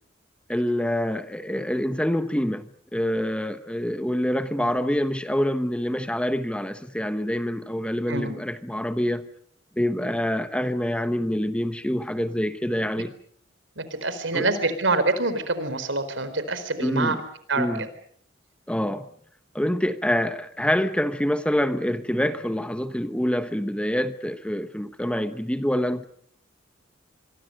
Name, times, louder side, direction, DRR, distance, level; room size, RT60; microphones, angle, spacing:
voice 1, 0.5-9.3 9.8-13.1 14.3-14.5 16.8-17.2 17.5-17.9 18.7-19.1 19.5-26.1, equal, 5° left, 1.1 m, -26 dB
voice 2, 13.8-17.2 17.5-17.9, right 3 dB, 75° right, 4.1 m, -26 dB
26.5 x 23.5 x 6.7 m
head